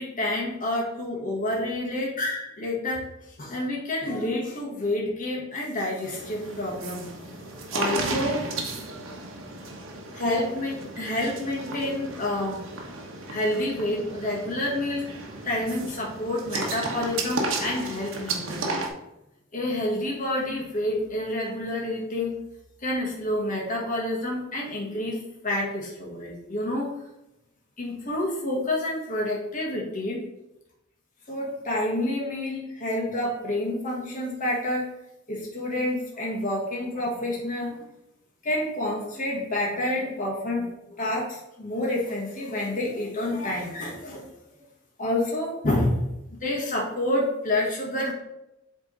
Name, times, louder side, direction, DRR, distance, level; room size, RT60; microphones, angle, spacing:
voice 1, 0.0-3.1 3.4-7.1 7.7-8.5 10.1-12.7 13.3-15.0 15.4-18.6 19.5-22.4 22.8-26.9 27.8-30.3 31.3-34.9 35.3-37.8 38.4-44.3 45.0-46.1 46.4-48.1, left 1 dB, 40° left, -3 dB, 1.6 m, -28 dB
sound 1, 6.0-18.9, right 3 dB, 75° right, 1.2 m, -34 dB
7.6 x 3.6 x 4.0 m, 0.89 s
head